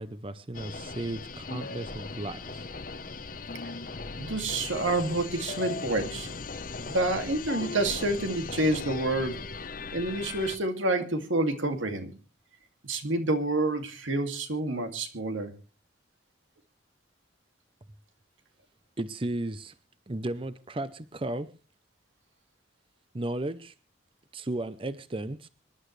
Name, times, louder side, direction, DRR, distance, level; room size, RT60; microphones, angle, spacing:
voice 1, 0.0-2.7 19.0-19.7 20.1-21.5 23.1-23.7 24.3-25.5, right 1 dB, 25° right, 13 dB, 0.6 m, -34 dB
sound 1, 0.5-10.6, left 3 dB, 45° left, 0.9 m, -38 dB
voice 2, 4.1-6.3 6.9-9.4 9.9-12.1 12.8-15.5, right 2 dB, 90° right, 6 dB, 2.4 m, -28 dB
26.0 x 11.5 x 3.2 m, 0.33 s
head